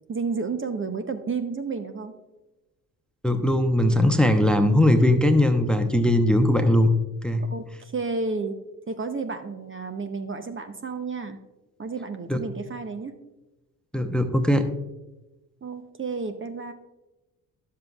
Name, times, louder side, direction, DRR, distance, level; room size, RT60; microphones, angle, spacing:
voice 1, 0.1-2.1 7.5-8.6 8.9-11.4 11.8-13.1 15.6-16.7, right 4 dB, 25° right, 8 dB, 0.8 m, -31 dB
voice 2, 3.2-6.9 7.2-7.4 12.3-12.4 13.9-14.6, left 1 dB, ahead, 7 dB, 0.8 m, -20 dB
11.0 x 7.4 x 2.4 m, 1.0 s
hypercardioid pair, 50°, 46 cm